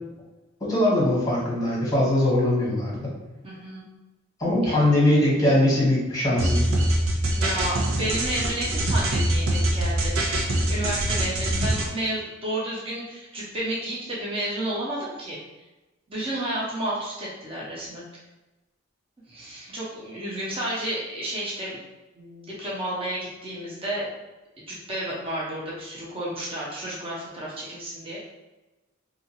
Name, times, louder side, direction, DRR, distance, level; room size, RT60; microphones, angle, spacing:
voice 1, 0.6-3.1 4.4-6.7, left 1 dB, 15° left, -6 dB, 0.9 m, -21 dB
voice 2, 3.4-3.9 4.6-4.8 7.3-10.2 10.7-15.4 16.1-18.0 19.3-21.8 22.2-24.1 24.7-28.2, right 1 dB, 25° right, -6 dB, 0.7 m, -31 dB
sound 1, 6.4-11.9, right 1 dB, 85° right, 0.6 m, -23 dB
2.8 x 2.4 x 2.8 m, 1.1 s
head